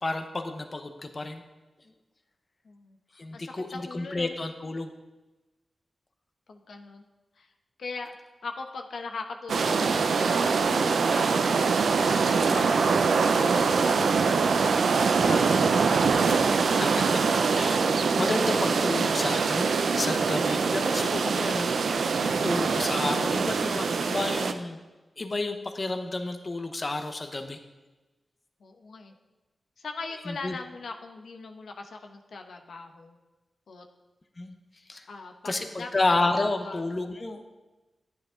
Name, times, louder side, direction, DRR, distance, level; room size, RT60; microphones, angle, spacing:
voice 1, 0.0-1.4 3.2-3.7 3.9-4.9 12.6-12.7 16.7-17.2 17.5-24.8 25.2-27.6 30.3-30.6 34.4-34.5 34.9-35.0 35.4-37.4, left 2 dB, 40° left, 7 dB, 1.0 m, -31 dB
voice 2, 2.6-3.0 3.3-4.3 6.5-7.0 7.4-7.5 7.8-8.2 8.4-11.6 12.0-14.4 15.1-15.4 15.7-16.5 28.6-29.1 29.8-33.2 33.7-33.9 35.1-35.9 36.6-36.8, left 4 dB, 80° left, 4 dB, 1.0 m, -40 dB
sound 1, 9.5-24.5, right 5 dB, 80° right, 0.6 m, -24 dB
10.5 x 9.6 x 3.8 m, 1.1 s
cardioid pair, 55°, 0 cm